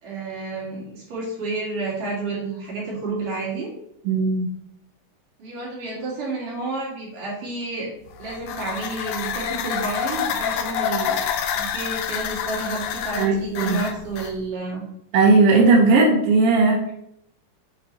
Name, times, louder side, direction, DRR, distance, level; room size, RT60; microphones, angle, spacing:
voice 1, 0.0-3.7 5.4-7.9 8.2-11.2 11.5-14.8, right 2 dB, 85° right, -5 dB, 4.0 m, -30 dB
voice 2, 4.0-4.5 13.2-13.8 15.1-16.9, right 3 dB, 65° right, -1 dB, 1.5 m, -17 dB
sound 1, 8.1-14.3, left 8 dB, 75° left, 1.6 m, -28 dB
8.7 x 3.3 x 4.0 m, 0.73 s
omnidirectional pair, 3.6 m